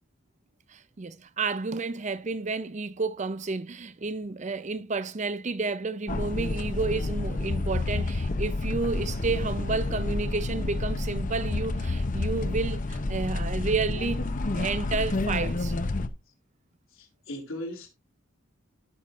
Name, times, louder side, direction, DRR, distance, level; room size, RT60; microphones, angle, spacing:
voice 1, 0.7-15.7, right 3 dB, 35° right, 0.6 m, -31 dB
sound 1, 6.1-16.1, left 2 dB, 40° left, 0.7 m, -29 dB
voice 2, 16.9-17.9, left 1 dB, 85° left, 3.2 m, -38 dB
15.5 x 5.8 x 2.5 m
head